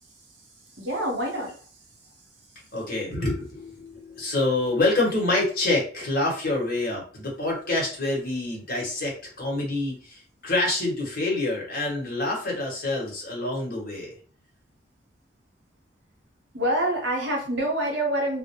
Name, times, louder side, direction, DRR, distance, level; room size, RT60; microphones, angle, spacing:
voice 1, 0.7-1.7 16.5-18.4, right 1 dB, 65° right, 0 dB, 0.8 m, -26 dB
voice 2, 2.7-14.1, left 2 dB, 50° left, -2 dB, 1.0 m, -27 dB
2.1 x 2.1 x 2.9 m, 0.41 s
head